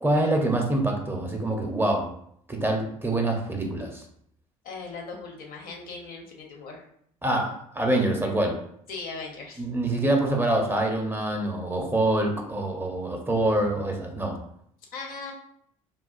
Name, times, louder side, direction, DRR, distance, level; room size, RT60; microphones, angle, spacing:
voice 1, 0.0-2.1 2.5-4.0 7.2-8.6 9.6-14.4, right 1 dB, 10° right, 2 dB, 0.6 m, -25 dB
voice 2, 4.6-6.8 8.9-9.6 14.9-15.3, left 4 dB, 55° left, 1 dB, 0.8 m, -38 dB
3.6 x 2.4 x 2.4 m, 0.69 s
hypercardioid pair, 60°, 18 cm